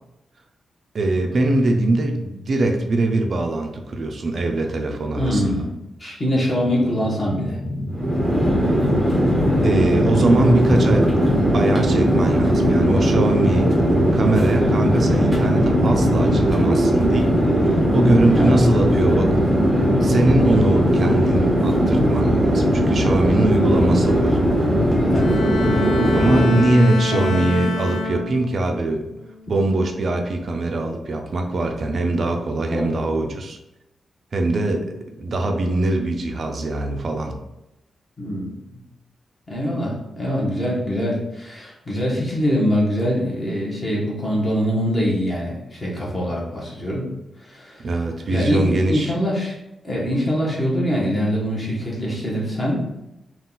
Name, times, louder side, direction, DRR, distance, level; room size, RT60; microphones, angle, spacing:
voice 1, 0.9-5.6 9.6-11.1 11.5-19.6 20.0-24.4 26.1-29.1 29.5-33.6 34.3-37.4 47.8-49.1, right 2 dB, 50° right, 3 dB, 0.4 m, -22 dB
voice 2, 5.2-5.7 6.0-7.6 18.4-18.6 25.1-25.3 27.1-27.6 32.7-32.9 38.2-38.8 39.5-47.1 47.4-47.9 48.3-49.6 49.8-52.8, equal, 20° left, -5 dB, 1.2 m, -23 dB
sound 1, 6.6-17.5, equal, 90° left, 1.1 m, -30 dB
Chatter / Fixed-wing aircraft airplane, 7.9-26.8, equal, ahead, 0.9 m, -18 dB
Bowed string instrument, 25.1-28.7 29.2-29.5, left 3 dB, 65° left, 0.4 m, -27 dB
3.8 x 2.3 x 3.9 m, 0.90 s
wide cardioid pair, 135°, 0 cm